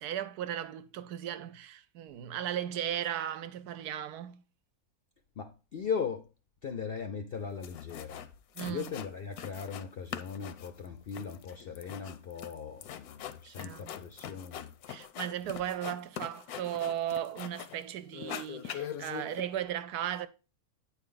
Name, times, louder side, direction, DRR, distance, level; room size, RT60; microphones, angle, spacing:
voice 1, 0.0-4.4 8.6-8.9 13.4-13.9 14.9-20.3, right 10 dB, 90° right, 1.2 m, -36 dB
voice 2, 5.4-6.3 6.6-8.2 8.6-14.7, left 6 dB, 65° left, 0.5 m, -38 dB
sound 1, 7.3-7.4 7.6-8.3 8.6-9.9 10.1-17.8 18.1-19.4, left 9 dB, 80° left, 1.1 m, -43 dB
8.7 x 4.5 x 3.8 m
omnidirectional pair, 1.6 m